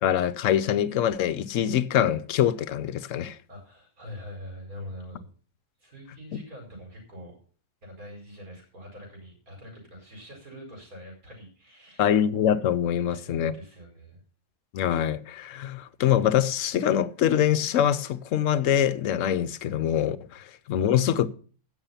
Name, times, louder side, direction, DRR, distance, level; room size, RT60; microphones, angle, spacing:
voice 1, 0.0-3.4 12.0-13.5 14.7-21.3, left 10 dB, 65° left, 1.0 m, -24 dB
voice 2, 3.5-5.3 5.8-7.3 7.8-12.1 13.0-14.2, equal, 65° right, 5.3 m, -44 dB
16.0 x 6.6 x 5.7 m
omnidirectional pair, 1.6 m